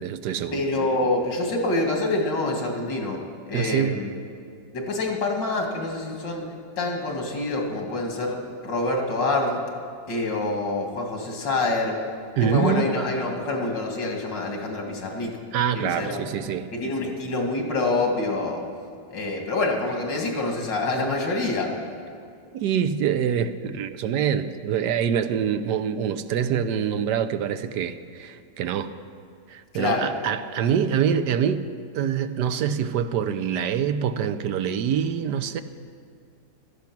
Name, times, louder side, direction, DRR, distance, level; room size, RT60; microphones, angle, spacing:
voice 1, 0.0-0.6 3.5-4.0 12.4-12.8 15.5-16.7 22.5-28.9 29.5-31.6 31.9-35.6, right 8 dB, 75° right, 11 dB, 1.2 m, -25 dB
voice 2, 0.5-3.2 3.5-4.1 4.7-6.5 6.8-9.6 10.1-12.0 12.4-15.4 15.7-16.2 16.7-18.6 19.1-21.7 29.7-30.1, left 2 dB, 90° left, 1 dB, 2.7 m, -26 dB
16.5 x 13.0 x 5.9 m, 2.3 s
omnidirectional pair, 1.9 m